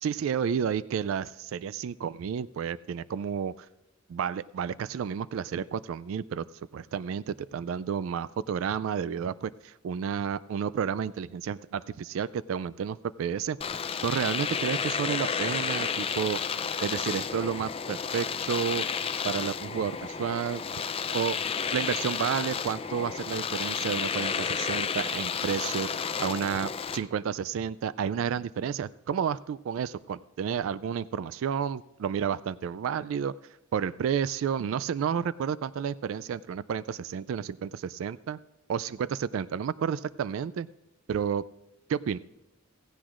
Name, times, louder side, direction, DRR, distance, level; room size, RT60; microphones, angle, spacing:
voice 1, 0.0-3.7 4.1-6.4 6.7-13.6 14.0-16.4 16.8-18.9 19.2-20.6 21.1-21.4 21.7-25.9 26.2-33.3 33.7-38.4 38.7-40.7 41.1-41.4 41.9-42.2, right 7 dB, 70° right, 18 dB, 0.3 m, -31 dB
Domestic sounds home sounds, 13.6-27.0, left 6 dB, 25° left, 0.4 m, -31 dB
16.0 x 15.5 x 2.5 m, 0.91 s
head